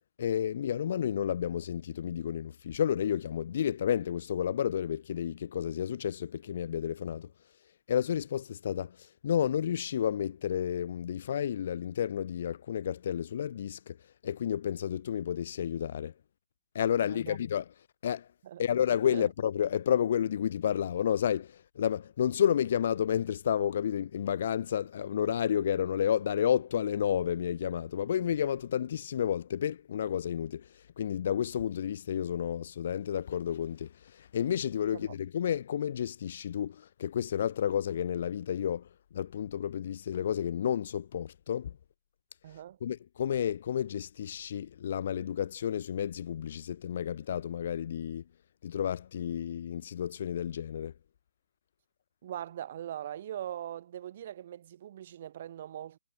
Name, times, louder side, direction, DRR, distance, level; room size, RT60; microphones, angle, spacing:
voice 1, 0.2-7.3 7.9-14.0 14.2-16.1 16.7-17.6 18.0-18.3 18.6-41.7 42.8-48.2 48.6-50.9, left 9 dB, 40° left, 1.4 m, -31 dB
voice 2, 17.0-17.4 18.4-18.6 19.1-19.3 34.9-35.1 42.4-42.8 52.2-56.0, right 11 dB, 35° right, 4.3 m, -41 dB
hypercardioid pair, 170°, 0 cm